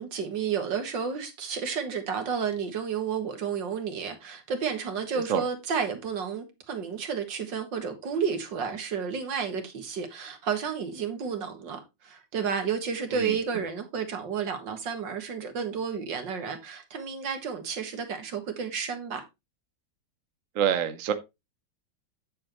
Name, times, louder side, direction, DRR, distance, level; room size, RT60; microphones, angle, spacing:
voice 1, 0.0-19.2, right 6 dB, 70° right, 2.3 m, -31 dB
voice 2, 20.5-21.1, right 9 dB, 55° right, 1.0 m, -26 dB
9.2 x 7.6 x 3.0 m
omnidirectional pair, 2.1 m